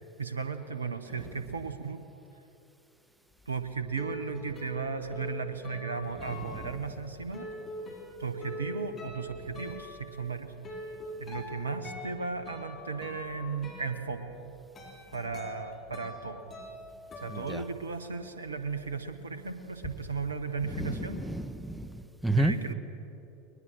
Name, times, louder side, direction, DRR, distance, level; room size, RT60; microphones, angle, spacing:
voice 1, 0.2-2.0 3.5-7.5 8.2-10.8 11.2-14.2 15.1-16.5 17.2-21.2 22.4-22.7, right 5 dB, 85° right, 10 dB, 1.1 m, -35 dB
sound 1, 3.4-18.2 18.5-19.9, left 1 dB, 30° left, 5.4 m, -44 dB
voice 2, 17.3-17.6 20.7-22.6, right 1 dB, 5° right, 12 dB, 1.2 m, -31 dB
21.0 x 21.0 x 6.4 m, 2.9 s
hypercardioid pair, 85°, 0 cm